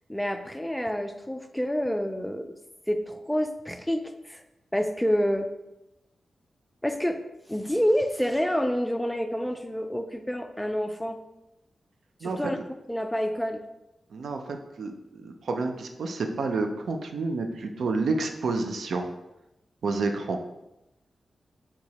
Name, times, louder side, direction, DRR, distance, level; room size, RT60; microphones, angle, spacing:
voice 1, 0.1-2.6 2.9-4.4 4.7-5.5 6.8-7.2 7.5-11.2 12.2-12.6 12.9-13.6, equal, 5° left, 6 dB, 0.3 m, -28 dB
voice 2, 14.1-19.1 19.8-20.4, right 3 dB, 75° right, 5 dB, 0.5 m, -29 dB
4.5 x 2.9 x 4.1 m, 0.92 s
wide cardioid pair, 175°, 0 cm